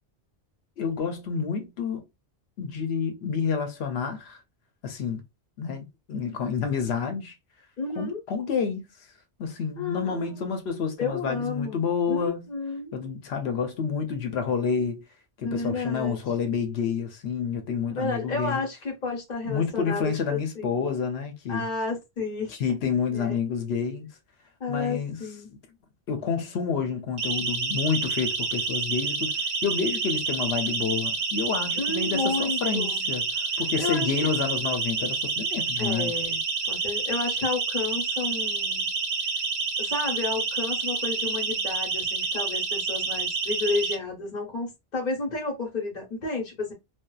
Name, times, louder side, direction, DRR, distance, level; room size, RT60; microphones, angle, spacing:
voice 1, 0.8-2.0 2.6-4.4 4.8-5.2 5.6-7.3 8.0-8.8 9.4-12.5 12.9-15.0 15.4-18.6 19.5-21.7 22.6-24.1 24.7-25.2 26.1-29.3 29.6-36.1, left 6 dB, 75° left, 0.8 m, -29 dB
voice 2, 7.8-8.2 9.7-10.4 11.0-12.9 15.4-16.2 18.0-20.9 21.5-22.5 23.1-23.4 24.6-25.5 31.8-33.1 33.8-34.3 35.8-36.4 36.7-38.9 39.8-46.7, left 3 dB, 45° left, 1.0 m, -31 dB
Siren, 27.2-43.9, right 4 dB, 55° right, 0.7 m, -28 dB
2.6 x 2.1 x 2.2 m
omnidirectional pair, 1.1 m